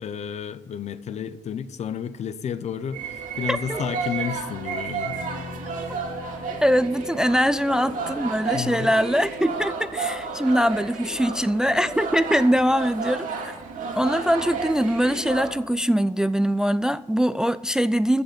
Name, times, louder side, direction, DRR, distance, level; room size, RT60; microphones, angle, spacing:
voice 1, 0.0-5.2 8.5-8.9, left 8 dB, 55° left, 0.8 m, -31 dB
sound 1, 2.9-15.6, right 5 dB, 75° right, 2.3 m, -32 dB
voice 2, 3.5-3.8 6.6-13.5 14.0-18.2, equal, 5° right, 0.3 m, -22 dB
sound 2, 5.1-9.1, left 5 dB, 90° left, 1.4 m, -42 dB
14.5 x 5.5 x 8.7 m
cardioid pair, 125°, 14 cm